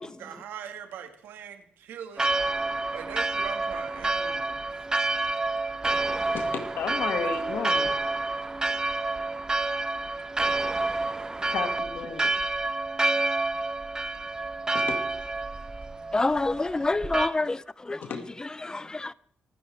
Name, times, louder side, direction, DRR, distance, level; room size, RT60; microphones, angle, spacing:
voice 1, 0.0-2.3 2.9-4.6 7.2-7.3, right 8 dB, 90° right, 1.8 m, -40 dB
Church bell, 2.2-17.3, right 2 dB, 20° right, 0.8 m, -28 dB
voice 2, 6.3-7.9 11.5-12.3 14.7-15.0 18.0-18.2, left 6 dB, 75° left, 2.0 m, -32 dB
voice 3, 16.1-18.1 18.4-19.1, left 2 dB, 20° left, 0.5 m, -27 dB
25.0 x 9.8 x 3.4 m
cardioid pair, 75°, 4 cm